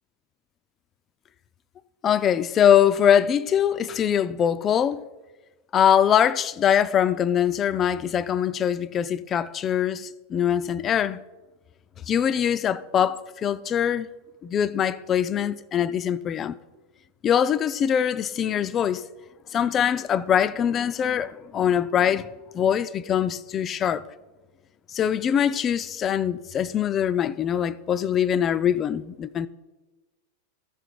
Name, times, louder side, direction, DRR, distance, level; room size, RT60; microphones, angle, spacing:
voice 1, 2.0-5.0 5.7-11.2 12.1-14.1 14.4-16.6 17.2-19.0 19.5-22.3 22.5-24.0 24.9-29.5, left 9 dB, 25° left, 0.3 m, -23 dB
14.0 x 5.0 x 4.4 m
figure-of-eight pair, 90°, 0 cm